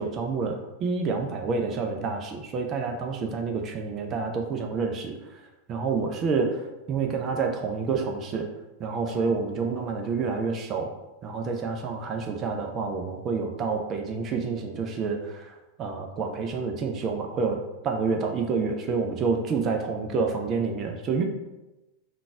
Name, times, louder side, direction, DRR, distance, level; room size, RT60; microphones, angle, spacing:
voice 1, 0.0-5.4 5.7-8.5 8.8-10.9 11.2-21.2, right 4 dB, 30° right, 3 dB, 0.5 m, -28 dB
3.8 x 2.4 x 4.6 m, 1.0 s
figure-of-eight pair, 90°, 0 cm